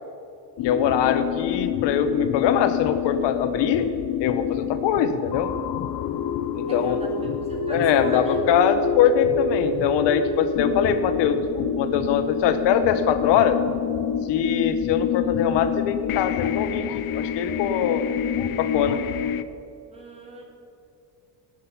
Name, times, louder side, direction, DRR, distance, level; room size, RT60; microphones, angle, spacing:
voice 1, 0.6-3.9 4.2-5.5 6.5-7.2 7.7-13.6 14.2-18.1 18.6-19.0, left 8 dB, 85° left, 9 dB, 1.1 m, -22 dB
sound 1, 0.6-19.4, left 7 dB, 60° left, 0.7 m, -27 dB
voice 2, 6.7-8.6 19.9-20.4, right 1 dB, 15° right, -2 dB, 2.2 m, -39 dB
17.5 x 6.4 x 5.7 m, 2.6 s
cardioid pair, 125°, 41 cm